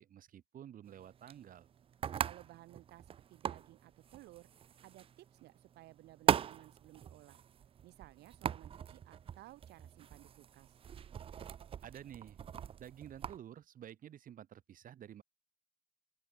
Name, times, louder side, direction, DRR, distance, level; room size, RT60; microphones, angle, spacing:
voice 1, 0.0-1.7 11.8-12.4 12.8-15.2, right 10 dB, 55° right, 3.2 m, -51 dB
sound 1, 0.9-13.4, right 8 dB, 35° right, 0.4 m, -40 dB
voice 2, 2.2-4.5 4.8-7.4 7.8-10.8, right 17 dB, 80° right, 1.2 m, -57 dB
open air
cardioid pair, 110°, 17 cm